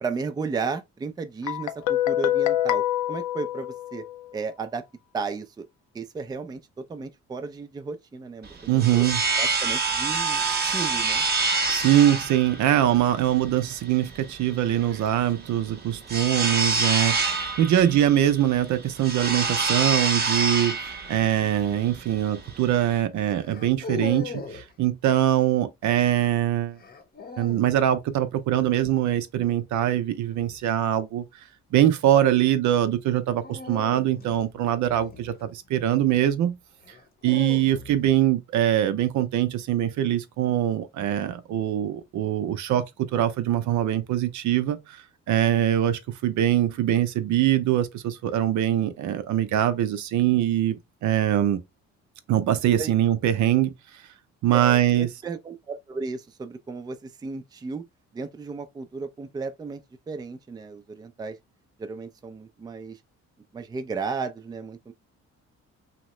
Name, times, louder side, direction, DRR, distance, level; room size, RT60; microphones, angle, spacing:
voice 1, 0.0-2.8 3.1-4.0 4.3-4.8 5.1-5.7 5.9-9.0 9.4-11.2 52.8-52.9 54.5-57.8 58.1-59.8 60.1-61.4 61.8-63.0 63.5-64.9, right 4 dB, 15° right, 0.4 m, -34 dB
Guitar, 1.5-4.3, left 13 dB, 80° left, 0.5 m, -26 dB
sound 1, 8.4-23.0, right 4 dB, 35° right, 0.8 m, -27 dB
voice 2, 8.7-9.2 11.7-26.8 27.4-31.3 31.7-36.6 37.2-51.6 52.3-53.7 54.4-55.1, right 12 dB, 70° right, 0.5 m, -23 dB
sound 2, 23.4-24.7 26.8-27.8 30.2-30.6 33.4-35.8 36.8-38.1, left 4 dB, 30° left, 0.7 m, -38 dB
2.8 x 2.0 x 3.0 m
cardioid pair, 90°, 30 cm